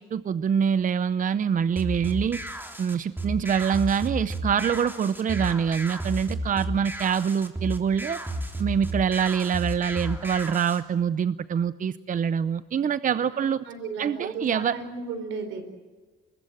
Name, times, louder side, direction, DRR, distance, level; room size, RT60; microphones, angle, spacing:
voice 1, 0.0-2.4 2.8-8.2 8.6-13.6 14.0-14.8, right 7 dB, 40° right, 15 dB, 0.7 m, -25 dB
sound 1, 1.8-10.8, right 1 dB, 10° right, 3.4 m, -33 dB
voice 2, 13.3-15.6, right 4 dB, 85° right, 8 dB, 4.6 m, -35 dB
25.0 x 21.0 x 7.4 m, 1.3 s
cardioid pair, 90°, 20 cm